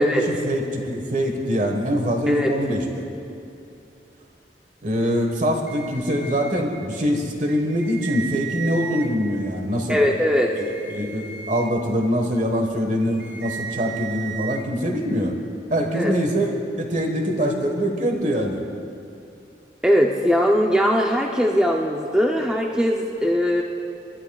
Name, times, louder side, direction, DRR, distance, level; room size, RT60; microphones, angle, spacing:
voice 1, 0.0-3.1 4.8-10.0 10.5-15.3 15.7-18.7, equal, 45° right, 3 dB, 1.4 m, -24 dB
sound 1, 5.7-6.6 7.4-9.1 10.4-11.7 13.0-14.6, right 7 dB, 85° right, 0.9 m, -35 dB
voice 2, 9.9-10.5 15.9-16.1 19.8-23.6, equal, 5° right, -1 dB, 0.6 m, -20 dB
28.0 x 12.0 x 2.4 m, 2.7 s
head